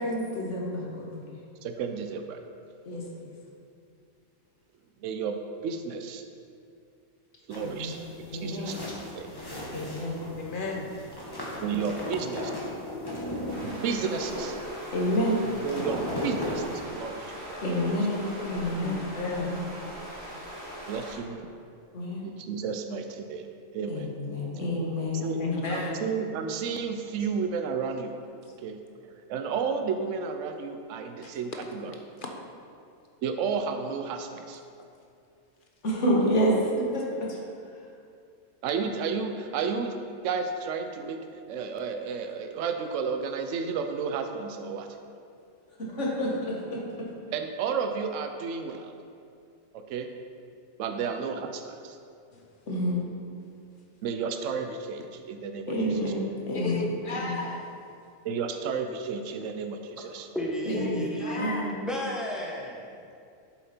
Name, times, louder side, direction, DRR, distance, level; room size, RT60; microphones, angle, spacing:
voice 1, 0.0-1.4 2.9-3.3 7.6-8.0 8.3-8.7 9.7-10.2 14.9-15.4 17.6-19.0 19.3-19.6 21.9-22.2 23.9-25.7 35.8-37.4 45.8-47.1 52.7-53.0 55.7-56.8 57.1-57.4 60.6-61.0 61.3-61.9, equal, 65° left, -3 dB, 1.8 m, -29 dB
voice 2, 1.6-2.4 5.0-6.2 7.5-8.0 8.3-9.3 11.6-12.5 13.6-14.6 15.6-16.6 16.9-17.7 20.9-21.4 22.2-23.5 23.7-24.1 25.1-25.4 25.7-28.2 28.6-32.0 33.2-34.6 38.6-39.9 40.2-44.9 47.3-49.0 49.7-50.1 50.8-52.0 54.0-55.7 58.2-60.3, right 5 dB, 80° right, 6 dB, 0.9 m, -32 dB
sound 1, 7.5-16.8, left 1 dB, 20° left, 1.3 m, -37 dB
voice 3, 10.4-10.9 16.2-16.4 18.8-19.5 24.2-24.3 25.4-26.1 44.6-44.8 52.3-52.4 56.5-57.7 60.7-61.7, left 3 dB, 45° left, 1 dB, 0.8 m, -34 dB
sound 2, 13.5-21.1, equal, 55° right, 1.9 m, -41 dB
voice 4, 60.3-61.5 61.8-63.0, equal, ahead, -3 dB, 0.9 m, -33 dB
7.3 x 7.0 x 4.3 m, 2.4 s
omnidirectional pair, 1.3 m